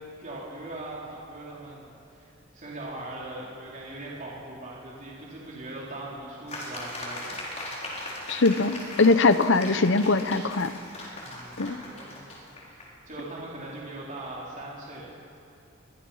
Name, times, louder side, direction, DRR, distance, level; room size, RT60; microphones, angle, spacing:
voice 1, 0.2-7.5 11.2-12.2 12.7-15.4, right 2 dB, 40° right, -5 dB, 3.9 m, -40 dB
sound 1, 6.5-12.9, left 1 dB, 35° left, 4.7 m, -39 dB
voice 2, 8.3-10.7 11.6-11.8, left 3 dB, 65° left, 12 dB, 0.9 m, -21 dB
25.5 x 22.5 x 5.8 m, 2.7 s
head